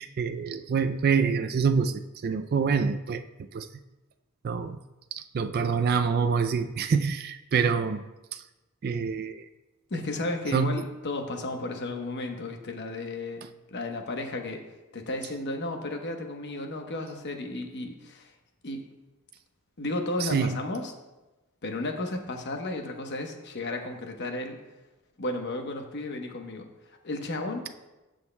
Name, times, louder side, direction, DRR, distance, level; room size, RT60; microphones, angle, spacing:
voice 1, 0.0-3.2 3.5-3.7 4.4-4.8 5.1-8.4 8.8-9.5 10.5-10.8 20.2-20.6, right 5 dB, 45° right, 8 dB, 0.3 m, -26 dB
voice 2, 9.9-14.7 14.9-18.3 18.6-18.9 19.8-20.9 21.6-24.6 25.2-27.7, left 2 dB, 50° left, 4 dB, 1.0 m, -33 dB
17.0 x 6.3 x 2.2 m, 1.1 s
head